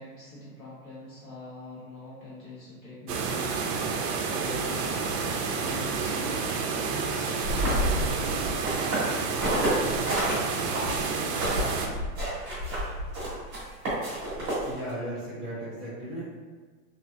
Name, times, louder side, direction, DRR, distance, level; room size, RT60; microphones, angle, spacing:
voice 1, 0.0-6.9 7.6-8.2, left 2 dB, 30° left, -8 dB, 0.9 m, -44 dB
sound 1, 3.1-11.9, right 5 dB, 80° right, 0.6 m, -29 dB
sound 2, 7.4-10.3 10.7-14.9, equal, 25° right, 0.9 m, -29 dB
voice 2, 14.6-16.4, right 1 dB, ahead, -19 dB, 0.5 m, -36 dB
2.7 x 2.4 x 2.4 m, 1.4 s
supercardioid pair, 165°, 47 cm